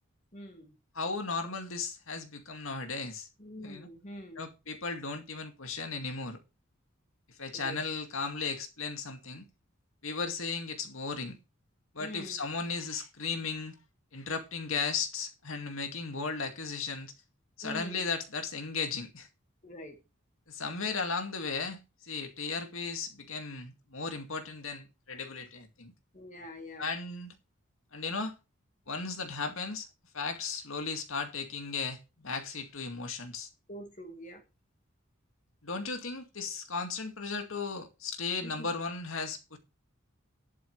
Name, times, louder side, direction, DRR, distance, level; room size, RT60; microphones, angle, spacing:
voice 1, 0.3-0.7 3.4-4.4 7.5-7.8 12.0-12.4 17.6-18.1 19.6-20.0 26.1-26.9 33.7-34.4 38.4-38.7, equal, 35° left, 1.9 m, -44 dB
voice 2, 0.9-3.3 3.6-3.9 4.4-6.4 7.4-9.5 10.0-11.4 11.9-13.8 14.1-17.1 17.6-19.3 20.5-25.9 26.8-27.4 27.9-28.3 28.9-29.9 30.1-33.5 35.6-39.6, left 4 dB, 80° left, 2.2 m, -36 dB
11.5 x 11.0 x 3.3 m
head